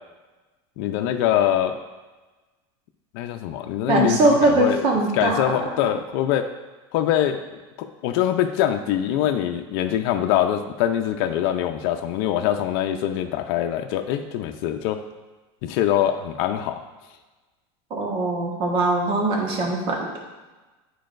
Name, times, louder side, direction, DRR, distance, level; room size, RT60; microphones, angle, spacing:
voice 1, 0.8-1.8 3.1-4.8 5.1-6.5 6.9-7.4 7.8-15.0 15.6-16.8, left 11 dB, 65° left, 6 dB, 0.6 m, -23 dB
voice 2, 3.9-5.4 17.9-20.1, right 2 dB, 40° right, 0 dB, 1.4 m, -21 dB
10.0 x 4.7 x 2.6 m, 1.2 s
supercardioid pair, 145°, 13 cm